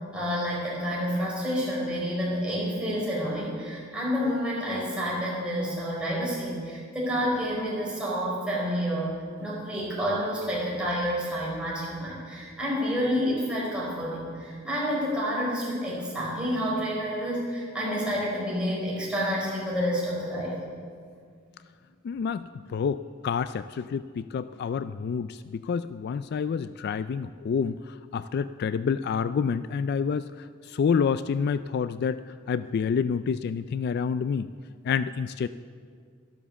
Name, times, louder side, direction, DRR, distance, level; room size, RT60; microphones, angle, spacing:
voice 1, 0.1-20.6, equal, 5° right, -6 dB, 4.8 m, -29 dB
voice 2, 22.0-32.2 32.5-34.5 34.8-35.5, left 6 dB, 55° left, 14 dB, 0.3 m, -28 dB
12.5 x 12.0 x 7.1 m, 2.1 s
head